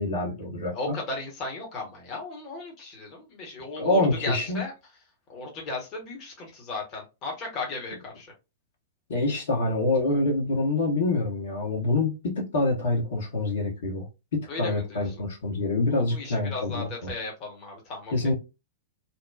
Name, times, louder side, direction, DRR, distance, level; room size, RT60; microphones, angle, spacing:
voice 1, 0.0-1.0 3.7-4.6 9.1-14.1 14.3-17.1 18.1-18.3, left 2 dB, 60° left, 1.2 m, -26 dB
voice 2, 0.7-4.7 5.3-8.3 14.5-15.0 15.9-18.1, left 3 dB, 35° left, 1.1 m, -36 dB
2.9 x 2.2 x 2.3 m
figure-of-eight pair, 100°, 0 cm